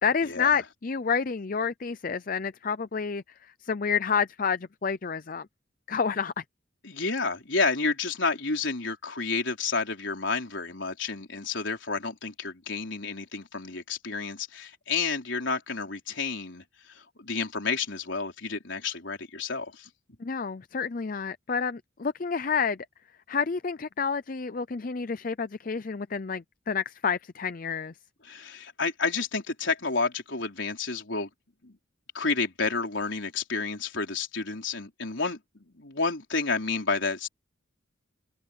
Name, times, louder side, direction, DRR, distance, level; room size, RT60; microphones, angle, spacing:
voice 1, 0.0-3.2 3.6-5.5 5.9-6.4 20.2-22.8 23.3-27.9, left 6 dB, 40° left, 0.5 m, -29 dB
voice 2, 6.8-19.9 28.2-31.3 31.6-31.8 32.1-37.3, left 4 dB, 65° left, 4.5 m, -30 dB
head